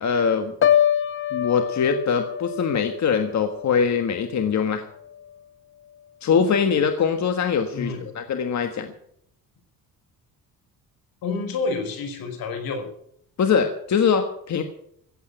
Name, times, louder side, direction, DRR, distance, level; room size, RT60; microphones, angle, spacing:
voice 1, 0.0-0.5 1.3-4.8 6.2-8.9 13.4-14.6, left 6 dB, 50° left, 7 dB, 1.5 m, -22 dB
Piano, 0.6-4.6 5.0-5.3, left 10 dB, 35° left, 0.7 m, -25 dB
voice 2, 7.7-8.1 11.2-12.8, left 4 dB, 80° left, 5 dB, 4.8 m, -29 dB
15.5 x 8.5 x 9.0 m, 0.71 s
cardioid pair, 110°, 35 cm